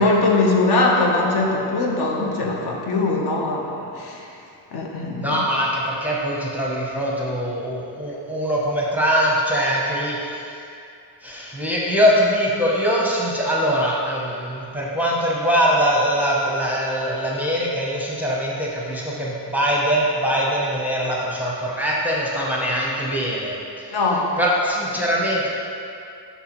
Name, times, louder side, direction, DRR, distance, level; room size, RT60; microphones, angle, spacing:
voice 1, 0.0-4.4 4.7-5.4 23.9-24.3, left 2 dB, 65° left, -1 dB, 1.0 m, -21 dB
voice 2, 5.2-10.6 11.2-24.0 24.4-25.5, equal, 5° right, -5 dB, 0.6 m, -22 dB
8.0 x 5.7 x 3.0 m, 2.6 s
wide cardioid pair, 165°, 43 cm